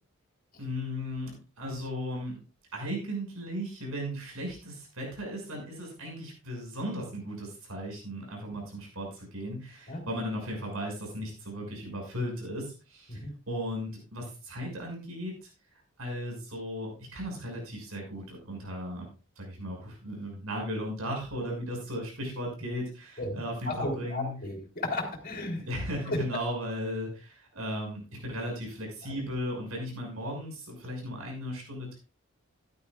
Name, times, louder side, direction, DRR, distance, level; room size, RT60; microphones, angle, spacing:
voice 1, 0.6-2.4 2.7-15.5 16.0-19.1 19.4-24.4 25.6-32.0, equal, 85° right, 0 dB, 6.2 m, -36 dB
voice 2, 23.2-25.7 26.1-26.2, left 1 dB, 45° left, 1 dB, 3.9 m, -34 dB
15.0 x 12.0 x 2.4 m, 0.32 s
head